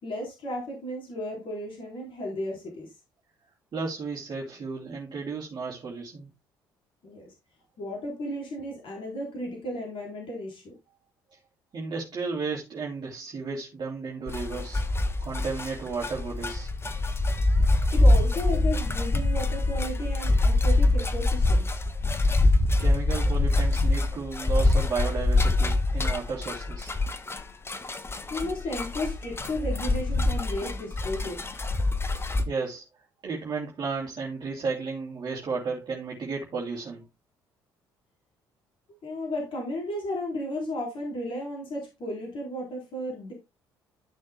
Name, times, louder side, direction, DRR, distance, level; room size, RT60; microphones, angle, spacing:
voice 1, 0.0-2.9 7.0-7.3 7.8-10.7 17.9-21.7 28.3-31.4 39.0-43.3, left 1 dB, 50° left, 4.0 m, -34 dB
voice 2, 3.7-6.3 11.7-14.8 15.2-16.7 22.3-22.4 22.8-27.0 32.5-32.8 33.2-37.0, right 4 dB, 40° right, 2.8 m, -33 dB
sound 1, 14.3-32.5, left 2 dB, 20° left, 1.3 m, -25 dB
13.5 x 6.4 x 2.2 m
hypercardioid pair, 50°, 11 cm